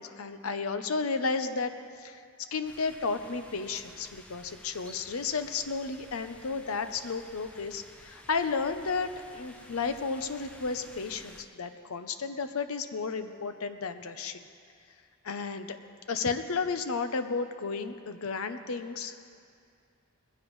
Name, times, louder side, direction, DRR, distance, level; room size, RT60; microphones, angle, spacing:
voice 1, 0.0-1.7 2.0-2.2 2.5-14.4 15.2-15.8 16.1-19.2, left 4 dB, 75° left, 9 dB, 0.7 m, -33 dB
sound 1, 2.6-11.4, equal, 5° left, 0.6 m, -53 dB
20.0 x 15.0 x 3.2 m, 2.4 s
head